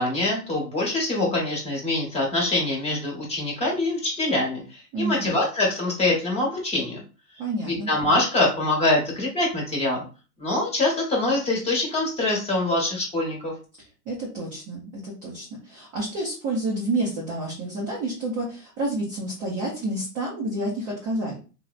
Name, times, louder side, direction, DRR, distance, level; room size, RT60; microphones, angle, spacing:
voice 1, 0.0-7.0 7.7-10.0 10.4-13.5, left 2 dB, 15° left, -2 dB, 1.0 m, -24 dB
voice 2, 4.9-5.4 7.4-7.9 13.8-21.4, right 2 dB, 20° right, -4 dB, 0.3 m, -29 dB
3.0 x 2.0 x 2.3 m, 0.35 s
hypercardioid pair, 115°, 46 cm